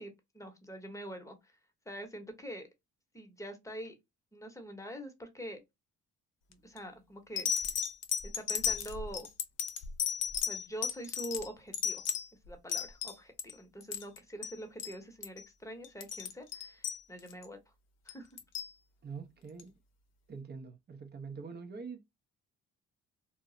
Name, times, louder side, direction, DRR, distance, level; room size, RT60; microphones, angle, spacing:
voice 1, 0.0-1.4 1.9-2.7 3.1-3.9 4.3-5.6 6.5-7.7 8.4-9.3 10.5-12.0 12.5-17.6 18.0-18.3, equal, 10° left, 0.9 m, -44 dB
sound 1, 6.5-6.8 7.4-13.5 13.8-14.2 14.4-14.5 14.8-15.0 15.2-15.4 15.8-17.5 18.1-18.7 19.6-19.7, left 7 dB, 60° left, 0.6 m, -35 dB
voice 2, 19.0-19.7 20.3-22.0, right 5 dB, 35° right, 0.7 m, -44 dB
2.1 x 2.0 x 3.7 m
cardioid pair, 80°, 30 cm